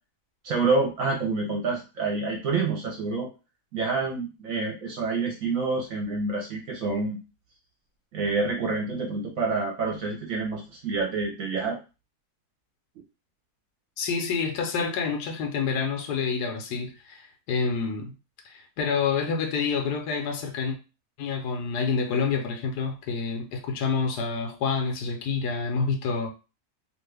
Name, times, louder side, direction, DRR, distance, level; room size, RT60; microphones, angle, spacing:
voice 1, 0.4-3.3 3.7-7.2 8.1-11.8, right 4 dB, 65° right, 1.0 m, -27 dB
voice 2, 14.0-18.1 18.4-20.8 21.2-26.3, left 5 dB, 85° left, 1.2 m, -28 dB
2.9 x 2.4 x 3.3 m
omnidirectional pair, 1.7 m